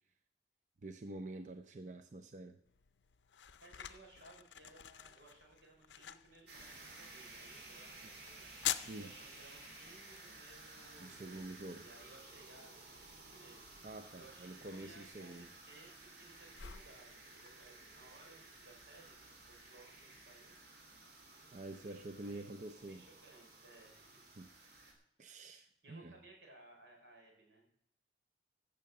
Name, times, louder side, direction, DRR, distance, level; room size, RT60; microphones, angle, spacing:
voice 1, 0.8-2.6 8.9-9.1 11.0-11.9 13.8-15.5 21.5-23.0 24.3-24.5 25.2-26.2, right 2 dB, 45° right, 7 dB, 0.5 m, -47 dB
sound 1, 2.7-20.2, left 12 dB, 90° left, 0.5 m, -49 dB
voice 2, 3.3-13.6 14.2-20.6 21.7-22.0 22.2-24.2 25.8-27.7, right 2 dB, 90° right, 0 dB, 4.8 m, -61 dB
sound 2, 6.5-24.9, right 2 dB, 65° right, 3.1 m, -55 dB
15.5 x 6.4 x 6.6 m, 0.75 s
head